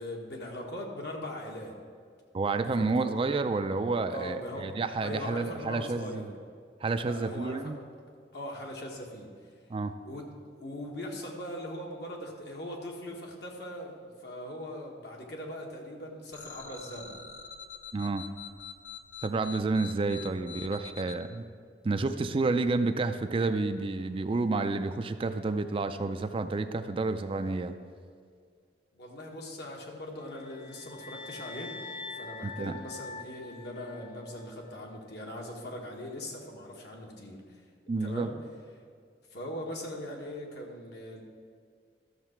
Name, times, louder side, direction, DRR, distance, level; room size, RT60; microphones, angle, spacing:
voice 1, 0.0-1.8 2.7-3.1 4.1-6.3 7.0-7.8 8.3-9.3 10.0-10.3 10.6-17.2 20.2-20.4 28.9-31.8 32.1-37.4 38.0-38.3 39.3-41.2, left 1 dB, 65° left, 0 dB, 1.6 m, -40 dB
voice 2, 2.3-6.2 6.8-7.8 9.7-9.9 17.9-18.3 19.2-21.4 21.8-27.7 32.4-32.7 37.9-38.3, right 3 dB, 30° right, 9 dB, 0.4 m, -30 dB
sound 1, 16.3-21.2, left 7 dB, 85° left, 0.8 m, -45 dB
sound 2, 30.3-34.5, left 4 dB, 30° left, 0.5 m, -44 dB
13.0 x 6.6 x 4.4 m, 2.1 s
head